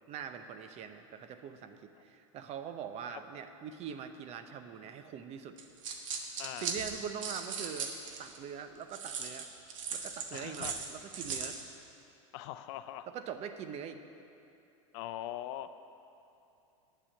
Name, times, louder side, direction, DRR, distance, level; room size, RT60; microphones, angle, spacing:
voice 1, 0.1-5.6 6.6-7.9 8.2-9.5 9.9-11.6 13.1-14.0, right 7 dB, 40° right, 8 dB, 0.8 m, -43 dB
sound 1, 5.6-8.4 8.9-11.6, right 6 dB, 75° right, 1.4 m, -38 dB
voice 2, 6.4-6.8 10.3-10.8 12.3-13.1 14.9-15.7, left 13 dB, 60° left, 11 dB, 0.5 m, -41 dB
8.8 x 7.1 x 8.4 m, 2.7 s
hypercardioid pair, 105°, 17 cm